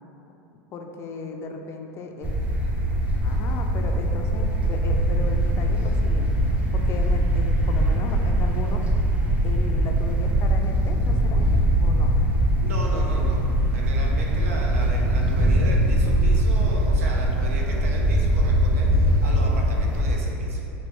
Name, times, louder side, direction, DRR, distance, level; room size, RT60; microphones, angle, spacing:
voice 1, 0.7-2.3 3.2-6.3 6.7-8.9 9.4-11.5 11.8-12.2, left 4 dB, 35° left, 4 dB, 0.3 m, -36 dB
sound 1, 2.2-20.2, right 1 dB, 15° right, 0.5 m, -21 dB
voice 2, 12.6-13.4 13.7-20.6, right 1 dB, 90° right, -1 dB, 0.5 m, -36 dB
3.1 x 2.9 x 3.0 m, 3.0 s
supercardioid pair, 110°, 7 cm